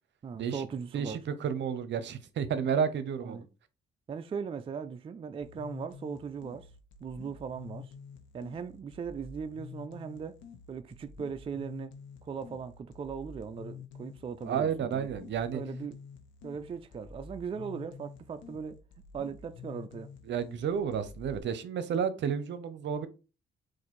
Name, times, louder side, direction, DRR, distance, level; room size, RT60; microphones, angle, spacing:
voice 1, 0.2-1.2 3.2-3.5 4.1-6.7 7.0-7.9 8.3-10.4 10.7-11.9 12.2-15.1 15.5-16.0 16.4-18.8 19.1-20.1, right 6 dB, 30° right, 0.3 m, -39 dB
voice 2, 0.9-3.4 14.5-15.6 20.3-23.1, right 7 dB, 65° right, 0.7 m, -31 dB
sound 1, 5.4-21.4, left 6 dB, 75° left, 0.9 m, -49 dB
4.0 x 2.6 x 4.4 m
cardioid pair, 90°, 20 cm